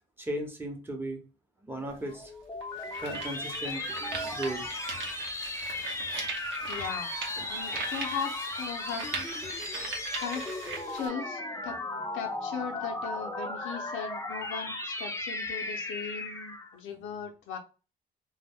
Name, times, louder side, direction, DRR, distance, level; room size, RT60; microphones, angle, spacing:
voice 1, 0.2-1.2 1.6-2.3 2.7-4.8 7.4-7.8, right 1 dB, 10° right, 3 dB, 0.8 m, -37 dB
sound 1, 1.9-2.0 2.6-11.1, right 5 dB, 80° right, 0.8 m, -40 dB
sound 2, 2.1-16.8, left 2 dB, 15° left, 0.5 m, -36 dB
voice 2, 6.7-7.1 7.5-9.1 10.2-10.5 10.9-11.8 12.1-17.6, left 7 dB, 90° left, 4 dB, 0.6 m, -38 dB
2.2 x 2.1 x 3.4 m, 0.34 s
cardioid pair, 90°, 20 cm